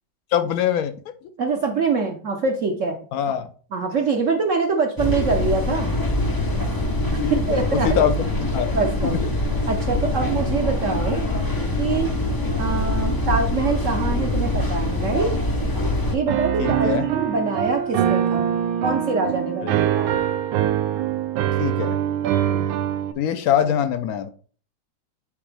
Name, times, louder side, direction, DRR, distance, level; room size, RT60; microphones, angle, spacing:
voice 1, 0.3-0.9 3.1-3.5 7.2-8.7 9.0-9.2 16.6-17.0 19.6-19.9 21.6-22.0 23.2-24.3, left 9 dB, 70° left, 10 dB, 0.8 m, -23 dB
voice 2, 1.4-3.0 3.7-5.9 7.3-8.0 8.7-9.2 9.7-11.2 11.8-12.1 12.6-15.3 16.1-18.5 18.8-20.1 22.5-22.7, right 4 dB, 60° right, 3 dB, 0.8 m, -24 dB
sound 1, 5.0-16.2, left 1 dB, 35° left, 0.3 m, -24 dB
Piano, 16.3-23.1, right 10 dB, 80° right, 1.4 m, -23 dB
8.9 x 3.8 x 3.3 m, 0.43 s
omnidirectional pair, 2.1 m